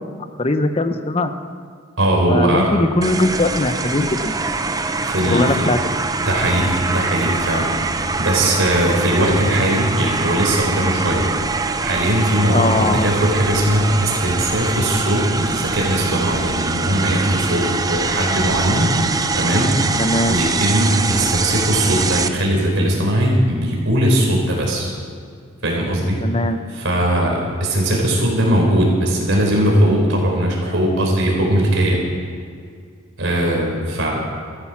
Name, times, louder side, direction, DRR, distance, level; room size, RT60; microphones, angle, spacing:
voice 1, 0.4-1.3 2.3-4.5 5.3-5.8 12.5-13.1 20.0-20.4 26.2-26.6, left 2 dB, 30° left, 8 dB, 0.8 m, -20 dB
voice 2, 2.0-2.7 5.0-5.7 6.3-7.8 8.2-11.3 11.8-18.9 19.3-19.8 20.3-24.9 25.6-26.2 26.7-32.0 33.2-34.2, right 1 dB, 65° right, -1 dB, 4.1 m, -19 dB
sound 1, 3.0-22.3, right 3 dB, 15° right, 0.5 m, -23 dB
14.5 x 13.0 x 6.1 m, 2.2 s
head